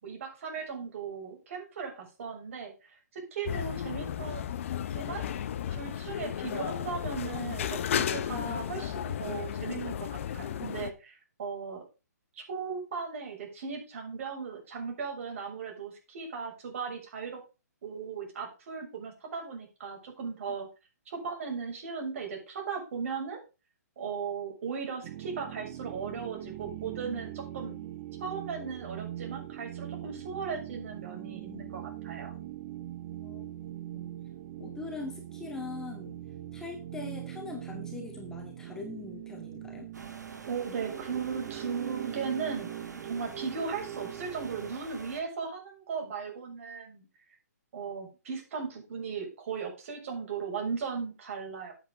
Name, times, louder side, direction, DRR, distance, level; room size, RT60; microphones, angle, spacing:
voice 1, 0.0-4.4 4.9-5.2 5.7-11.8 12.4-17.4 17.8-20.7 21.1-23.4 24.0-27.8 28.2-32.3 40.4-42.7 43.0-47.1 47.7-51.7, right 5 dB, 50° right, 2 dB, 6.8 m, -37 dB
sound 1, 3.5-10.9, left 9 dB, 50° left, 1.1 m, -34 dB
sound 2, 25.0-44.8, right 13 dB, 35° right, 0.8 m, -42 dB
voice 2, 33.2-33.5 33.9-34.1 34.6-36.2 36.5-39.9, left 4 dB, 5° left, 1 dB, 2.1 m, -42 dB
sound 3, 39.9-45.2, right 4 dB, 90° right, 3.4 m, -47 dB
12.5 x 8.5 x 3.8 m, 0.30 s
hypercardioid pair, 150°, 9 cm